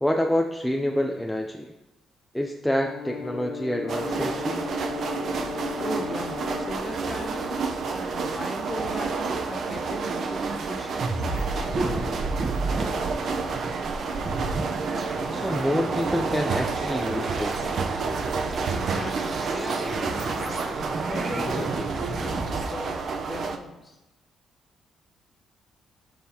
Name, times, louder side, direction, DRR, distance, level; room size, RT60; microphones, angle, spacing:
voice 1, 0.0-1.7 2.3-4.6 13.4-13.5 15.3-17.6, left 1 dB, 5° left, 1 dB, 0.6 m, -27 dB
Brass instrument, 2.7-6.9, left 5 dB, 85° left, 0.9 m, -36 dB
sound 1, 3.9-23.6, right 4 dB, 60° right, 0.7 m, -30 dB
voice 2, 5.8-12.0 18.7-24.0, left 2 dB, 30° left, 2 dB, 1.7 m, -38 dB
sound 2, 11.0-22.6, right 3 dB, 45° right, 1.1 m, -32 dB
12.5 x 5.6 x 2.9 m, 1.0 s
cardioid pair, 90°, 0 cm